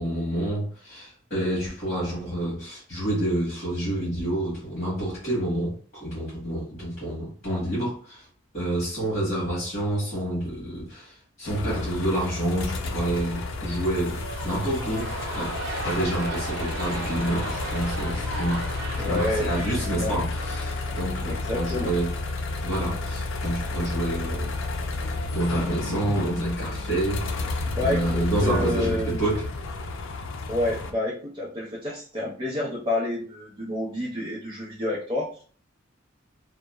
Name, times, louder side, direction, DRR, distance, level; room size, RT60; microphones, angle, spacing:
voice 1, 0.0-8.2 8.5-15.6 15.8-22.1 22.6-24.5 25.3-29.5, right 1 dB, 45° left, 1.4 m, -28 dB
sound 1, 11.4-30.9, left 3 dB, 75° left, 0.4 m, -31 dB
sound 2, 14.1-22.5, right 2 dB, 80° right, 0.6 m, -36 dB
voice 2, 19.0-20.1 21.3-21.9 27.7-29.2 30.5-35.4, left 2 dB, 25° right, 0.7 m, -29 dB
2.8 x 2.1 x 2.2 m
head